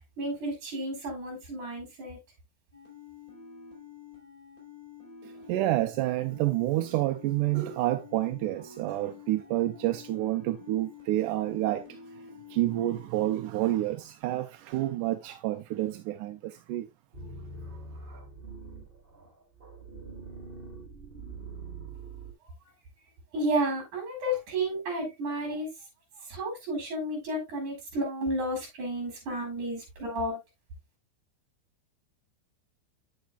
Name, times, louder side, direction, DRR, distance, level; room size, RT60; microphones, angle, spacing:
voice 1, 0.2-2.2 22.6-22.7 23.3-25.7 26.2-30.4, right 1 dB, 70° right, 5.8 m, -32 dB
sound 1, 2.7-13.1, left 6 dB, 25° left, 4.8 m, -49 dB
voice 2, 5.2-12.0 12.5-16.9, right 15 dB, 90° right, 2.2 m, -29 dB
sound 2, 17.1-22.3, right 3 dB, 15° right, 2.9 m, -43 dB
9.3 x 8.5 x 2.3 m
omnidirectional pair, 3.6 m